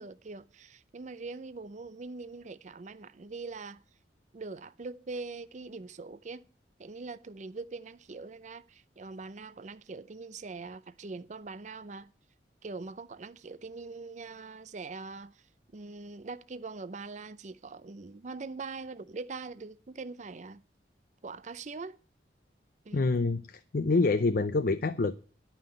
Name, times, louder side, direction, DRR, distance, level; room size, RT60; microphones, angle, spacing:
voice 1, 0.0-3.8 4.3-6.4 6.8-12.1 12.6-15.4 15.7-20.6 21.2-22.0 22.9-23.1, right 3 dB, 40° right, 0.5 m, -42 dB
voice 2, 22.9-25.1, left 3 dB, 50° left, 0.5 m, -26 dB
11.0 x 5.7 x 8.7 m
head